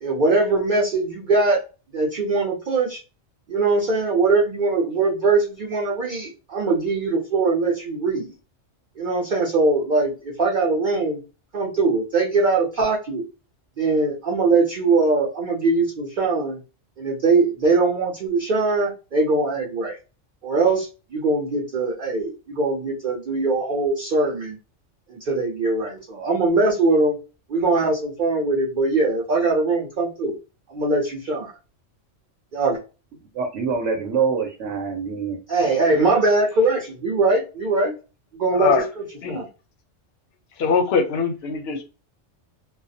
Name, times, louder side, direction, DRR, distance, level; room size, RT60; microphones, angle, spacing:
voice 1, 0.0-1.6 1.9-3.0 3.5-8.3 9.0-11.2 11.5-13.2 13.8-16.6 17.0-20.0 20.4-24.6 25.1-27.2 27.5-30.4 30.7-31.5 32.5-32.8 35.5-37.9 38.3-39.5, right 3 dB, 50° right, 0.6 m, -21 dB
voice 2, 33.4-35.4, right 5 dB, 75° right, 0.9 m, -25 dB
voice 3, 40.6-41.8, left 5 dB, 65° left, 0.7 m, -22 dB
2.3 x 2.1 x 2.6 m
omnidirectional pair, 1.3 m